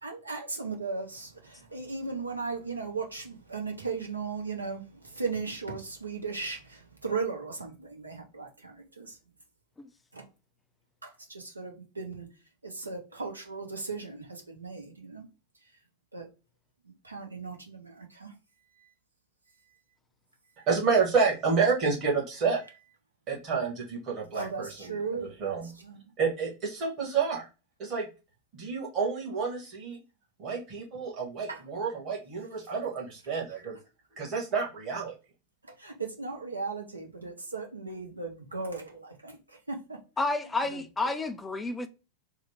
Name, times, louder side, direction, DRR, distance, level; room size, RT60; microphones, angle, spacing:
voice 1, 0.0-9.2 10.1-10.3 11.0-12.3 12.6-15.3 16.1-16.3 16.8-18.3 18.8-18.9 24.3-26.1 31.5-31.6 35.6-40.0 40.7-41.2, right 4 dB, 80° right, 0.8 m, -37 dB
voice 2, 20.7-22.6 23.3-24.7 25.4-25.7 26.2-27.5 27.8-28.1 28.5-30.0 30.4-33.8 34.2-35.1, right 5 dB, 35° right, 1.4 m, -29 dB
voice 3, 40.2-41.9, left 3 dB, 10° left, 0.4 m, -30 dB
3.3 x 2.2 x 3.3 m
figure-of-eight pair, 90°, 0 cm